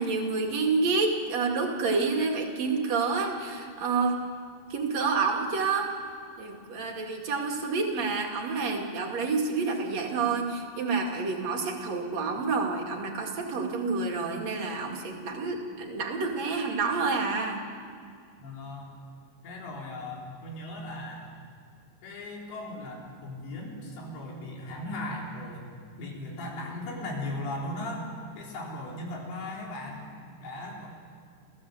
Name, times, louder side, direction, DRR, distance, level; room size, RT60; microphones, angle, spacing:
voice 1, 0.0-4.2 4.7-5.9 6.4-17.6, right 4 dB, 45° right, 1 dB, 3.0 m, -28 dB
voice 2, 18.4-18.9 19.4-21.3 22.0-25.7 26.0-28.1 28.4-30.0 30.4-30.9, left 1 dB, 80° left, -2 dB, 6.1 m, -37 dB
30.0 x 15.0 x 7.8 m, 2.3 s
omnidirectional pair, 5.0 m